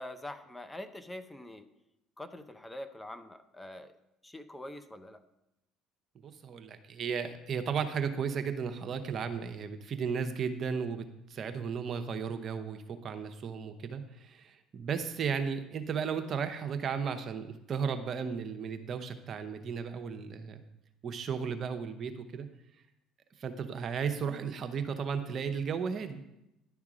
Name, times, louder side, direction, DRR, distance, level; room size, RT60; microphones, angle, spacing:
voice 1, 0.0-1.7 2.2-3.9 4.2-5.2, left 1 dB, 10° left, 10 dB, 0.7 m, -44 dB
voice 2, 6.2-11.0 11.3-20.6 21.0-22.5 23.4-26.2, right 6 dB, 50° right, 8 dB, 0.8 m, -34 dB
10.5 x 3.6 x 6.1 m, 0.88 s
hypercardioid pair, 70°, 0 cm